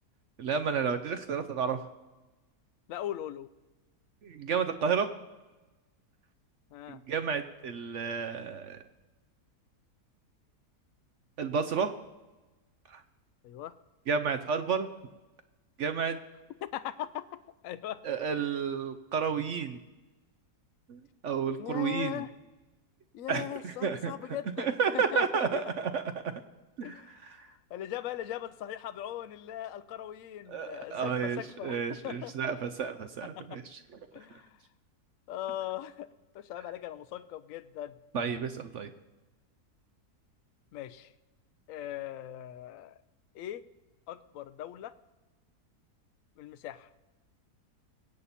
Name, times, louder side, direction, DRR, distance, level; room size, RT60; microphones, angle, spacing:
voice 1, 0.4-1.8 4.2-5.1 6.9-8.8 11.4-11.9 12.9-13.0 14.1-14.9 15.8-16.2 18.0-19.8 20.9-22.2 23.3-24.1 24.6-26.0 26.8-27.5 30.5-33.8 38.1-38.9, right 6 dB, 60° right, 8 dB, 0.9 m, -31 dB
voice 2, 2.9-3.5 6.7-7.0 13.4-13.7 16.6-18.0 21.6-22.3 23.1-24.7 24.9-25.7 26.8-31.8 32.0-32.3 33.4-33.6 34.1-34.6 35.3-36.1 36.3-38.0 40.7-41.1 41.7-42.9 43.3-43.6 44.1-44.9 46.4-46.9, left 12 dB, 65° left, 12 dB, 0.9 m, -39 dB
23.5 x 8.4 x 4.2 m, 1.1 s
omnidirectional pair, 1.7 m